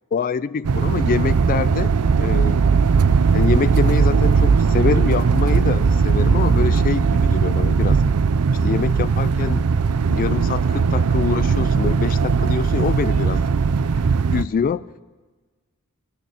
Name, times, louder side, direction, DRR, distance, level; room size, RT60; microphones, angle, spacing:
voice 1, 0.1-1.9 2.2-2.6 3.3-8.0 8.6-9.7 10.1-13.5 14.3-14.8, left 6 dB, 40° left, 16 dB, 0.3 m, -25 dB
sound 1, 0.6-14.4, right 5 dB, 80° right, 0.5 m, -18 dB
17.5 x 6.8 x 7.7 m, 1.3 s
head